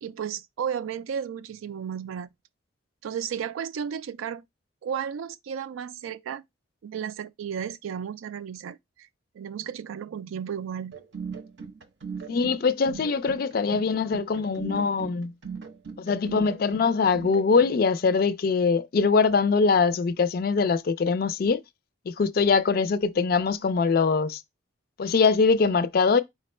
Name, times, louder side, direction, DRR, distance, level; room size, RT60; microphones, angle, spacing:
voice 1, 0.0-2.3 3.0-4.4 4.8-6.4 6.8-9.1 9.3-10.9, right 8 dB, 90° right, 0.3 m, -33 dB
sound 1, 10.9-17.7, right 5 dB, 60° right, 0.7 m, -39 dB
voice 2, 12.3-15.3 16.0-21.6 22.1-24.4 25.0-26.2, left 5 dB, 50° left, 0.3 m, -23 dB
4.7 x 2.1 x 4.2 m
head